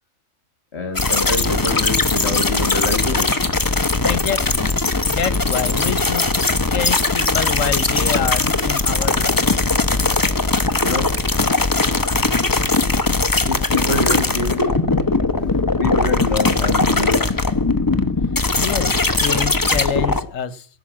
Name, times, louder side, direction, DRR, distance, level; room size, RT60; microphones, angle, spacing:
voice 1, 0.7-3.3 10.8-11.1 13.5-14.7 15.3-17.5, left 3 dB, 55° left, 2.2 m, -26 dB
sound 1, 0.9-20.2, left 3 dB, 20° left, 0.7 m, -19 dB
voice 2, 4.0-6.3 6.7-9.6 18.6-20.7, left 8 dB, 80° left, 1.4 m, -27 dB
16.5 x 6.6 x 7.4 m
omnidirectional pair, 1.3 m